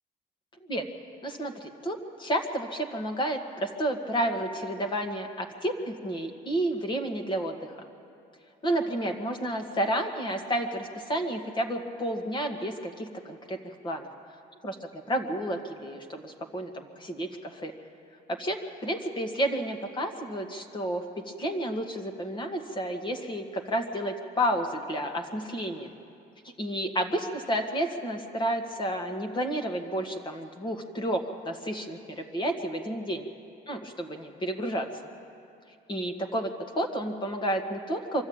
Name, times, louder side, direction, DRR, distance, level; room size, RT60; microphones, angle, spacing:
voice 1, 1.2-7.8 8.6-14.1 14.6-17.7 18.3-18.6 18.8-25.9 26.4-33.3 33.7-34.9 35.9-38.2, right 1 dB, 30° left, 4 dB, 1.8 m, -31 dB
24.5 x 13.0 x 8.8 m, 2.6 s
cardioid pair, 110°, 17 cm